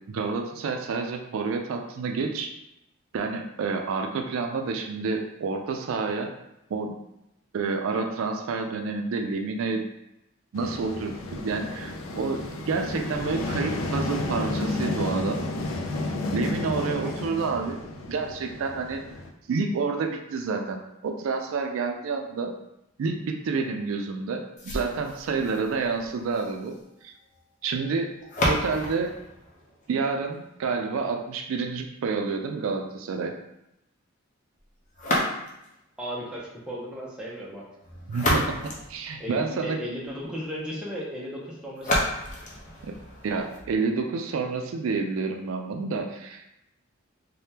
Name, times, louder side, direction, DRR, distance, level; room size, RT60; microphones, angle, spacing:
voice 1, 0.1-2.5 3.1-6.3 6.7-7.0 7.5-9.8 10.5-15.4 16.3-17.8 18.1-19.0 19.5-22.5 23.0-26.7 27.0-27.1 27.6-28.1 28.4-29.1 29.9-33.3 38.1-39.8 42.8-43.0 43.2-46.6, right 4 dB, 75° right, 4 dB, 0.4 m, -29 dB
sound 1, 10.6-19.3, left 2 dB, 80° left, 0.4 m, -32 dB
sound 2, 24.6-30.5 34.9-35.8 37.8-39.8 41.8-43.8, left 1 dB, 40° left, 0.6 m, -31 dB
voice 2, 36.0-37.7 39.2-42.1, equal, 5° right, -5 dB, 0.6 m, -35 dB
3.4 x 2.2 x 2.8 m, 0.86 s
head